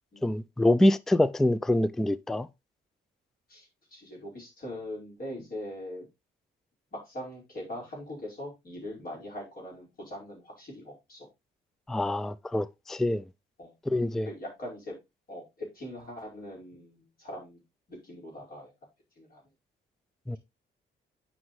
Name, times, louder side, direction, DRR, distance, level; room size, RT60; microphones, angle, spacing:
voice 1, 0.2-2.5 11.9-13.2 13.9-14.3 20.3-20.4, left 1 dB, ahead, 0.3 m, -25 dB
voice 2, 3.5-6.1 6.9-11.3 13.6-13.7 14.2-15.0 15.3-17.6 17.9-18.7 19.2-19.4, left 1 dB, 50° left, 5.2 m, -41 dB
9.4 x 5.4 x 3.2 m
cardioid pair, 90°, 20 cm